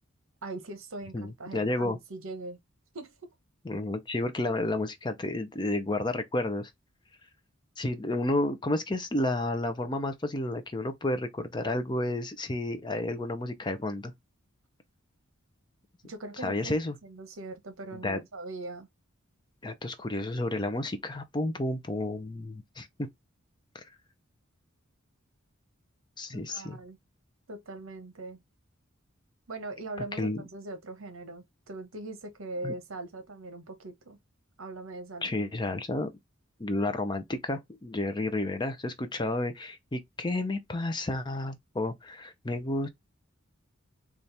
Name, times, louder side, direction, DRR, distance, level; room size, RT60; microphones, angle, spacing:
voice 1, 0.4-2.6 2.9-3.3 16.1-18.9 26.3-27.0 27.5-28.4 29.5-34.2 34.6-35.5, right 2 dB, 75° right, 0.9 m, -41 dB
voice 2, 1.1-2.0 3.6-6.7 7.8-14.1 16.4-16.9 18.0-18.2 19.6-22.9 23.7-23.8 26.2-26.8 30.2-30.4 32.6-32.7 35.2-36.1 36.6-42.9, left 2 dB, 20° left, 0.5 m, -31 dB
4.2 x 2.4 x 3.3 m
head